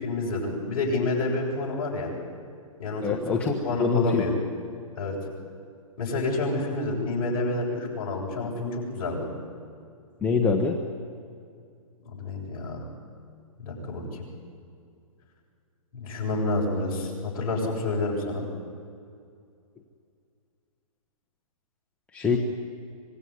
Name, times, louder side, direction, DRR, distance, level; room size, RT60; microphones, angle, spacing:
voice 1, 0.0-2.1 2.8-3.4 3.6-4.3 4.9-5.2 6.0-9.3 12.2-12.9 13.6-14.0 16.0-18.5, left 2 dB, 40° left, -3 dB, 7.9 m, -28 dB
voice 2, 3.0-4.2 10.2-10.8 22.1-22.4, left 4 dB, 5° left, -1 dB, 1.2 m, -24 dB
25.5 x 20.0 x 9.6 m, 2.3 s
hypercardioid pair, 160°, 18 cm